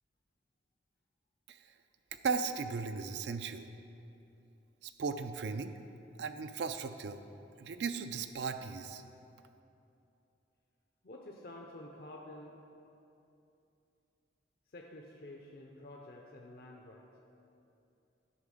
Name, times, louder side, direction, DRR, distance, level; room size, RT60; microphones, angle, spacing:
voice 1, 2.2-3.7 4.8-5.7 6.2-7.2 7.6-9.0, right 5 dB, 70° right, 9 dB, 0.4 m, -36 dB
voice 2, 11.0-12.6 14.7-17.1, left 1 dB, 55° left, 0 dB, 0.6 m, -50 dB
10.5 x 4.1 x 6.4 m, 2.8 s
head